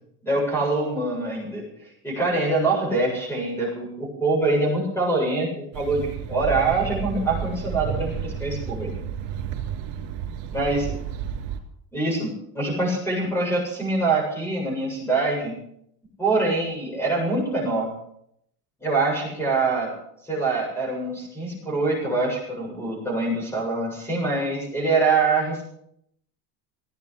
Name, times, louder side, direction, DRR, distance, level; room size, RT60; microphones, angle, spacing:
voice 1, 0.2-1.7 2.0-9.0 10.5-11.0 11.9-15.6 16.2-17.9 18.8-20.0 20.2-25.7, right 3 dB, 5° left, -1 dB, 7.4 m, -24 dB
sound 1, 5.7-11.6, right 8 dB, 80° right, 3.3 m, -31 dB
17.0 x 9.4 x 8.4 m, 0.72 s
cardioid pair, 175°, 42 cm